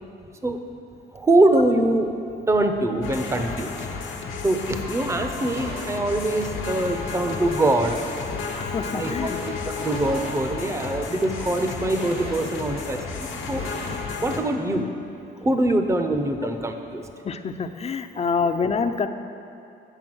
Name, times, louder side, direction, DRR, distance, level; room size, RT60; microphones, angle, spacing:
voice 1, 1.1-2.1 2.5-3.8 4.4-8.1 8.9-9.1 9.7-13.6 14.2-14.9 15.4-17.0, right 1 dB, 15° right, 6 dB, 0.6 m, -23 dB
sound 1, 3.0-14.4, left 5 dB, 75° left, 1.0 m, -32 dB
sound 2, 5.4-6.3 6.7-8.5 8.8-10.3 10.6-10.7 11.0-12.9 13.2-14.0, right 2 dB, 65° right, 2.3 m, -40 dB
voice 2, 8.5-9.4 17.2-19.1, left 5 dB, 30° left, 9 dB, 0.5 m, -26 dB
9.0 x 5.4 x 6.1 m, 2.6 s
cardioid pair, 90°, 20 cm